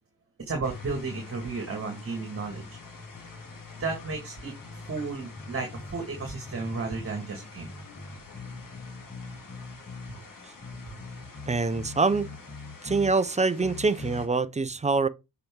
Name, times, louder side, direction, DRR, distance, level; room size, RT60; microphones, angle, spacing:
voice 1, 0.4-2.7 3.8-4.5 4.8-7.7 10.1-10.2 10.9-11.0 11.3-11.4, right 4 dB, 30° right, 1.9 m, -33 dB
sound 1, 0.6-14.3, left 4 dB, 50° left, 2.1 m, -46 dB
sound 2, 2.4-4.2 4.6-7.2 7.6-10.2 10.6-13.2 13.6-14.3, left 3 dB, 25° left, 1.5 m, -43 dB
voice 2, 11.5-12.3 12.8-15.1, right 3 dB, 15° right, 0.6 m, -25 dB
6.7 x 4.5 x 3.7 m
cardioid pair, 75°, 41 cm